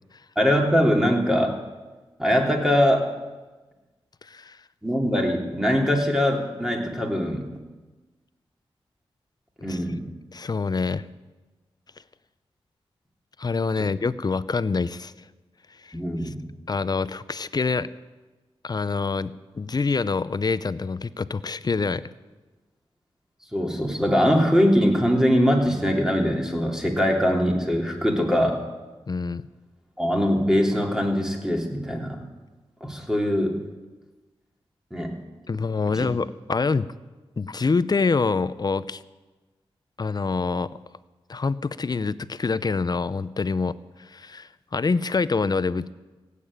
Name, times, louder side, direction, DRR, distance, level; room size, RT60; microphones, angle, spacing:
voice 1, 0.3-1.6 2.2-3.1 4.8-7.6 9.6-10.0 13.8-13.9 15.9-16.4 23.5-28.6 30.0-32.2 32.8-33.6 34.9-35.2 35.9-36.1, equal, 5° right, 1 dB, 3.1 m, -22 dB
voice 2, 4.2-4.6 9.7-9.8 10.3-11.1 13.4-15.1 15.8-15.9 16.2-16.3 16.7-17.9 18.6-22.1 29.1-29.4 35.5-36.9 37.4-39.0 40.0-40.7 41.3-43.7 44.0-45.9, left 4 dB, 40° left, 16 dB, 0.6 m, -26 dB
16.5 x 8.5 x 8.8 m, 1.2 s
cardioid pair, 60°, 10 cm